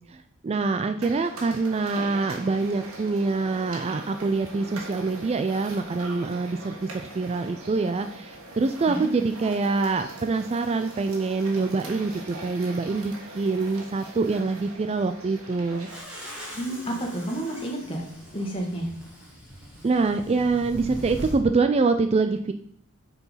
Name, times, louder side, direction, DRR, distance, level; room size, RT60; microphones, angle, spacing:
voice 1, 0.1-15.9 19.8-22.5, right 3 dB, 30° right, 8 dB, 0.3 m, -25 dB
sound 1, 1.0-16.0, right 2 dB, 75° right, 2.0 m, -41 dB
sound 2, 15.8-21.4, equal, 5° right, 2.2 m, -40 dB
voice 2, 16.5-18.0 18.3-18.9, right 1 dB, 25° left, 1 dB, 1.7 m, -30 dB
6.8 x 4.6 x 5.6 m, 0.69 s
head